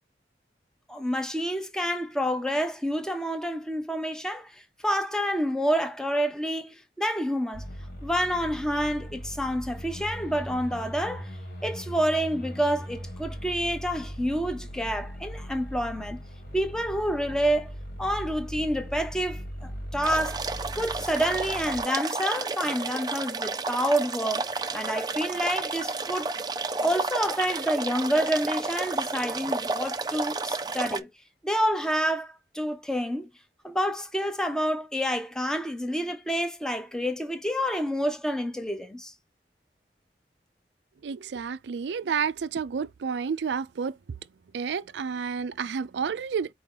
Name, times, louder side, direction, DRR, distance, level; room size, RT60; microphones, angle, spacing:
voice 1, 0.9-7.6 8.0-11.3 11.6-16.2 16.5-17.7 18.0-20.4 20.7-26.3 26.8-31.1 31.4-33.3 33.6-39.1, equal, 5° left, 0.7 m, -28 dB
sound 1, 7.5-21.8, equal, 60° left, 1.8 m, -39 dB
sound 2, 20.0-31.0, right 3 dB, 25° right, 0.4 m, -31 dB
voice 2, 41.0-43.9 44.5-46.5, right 6 dB, 85° right, 0.4 m, -30 dB
4.7 x 2.8 x 3.7 m
head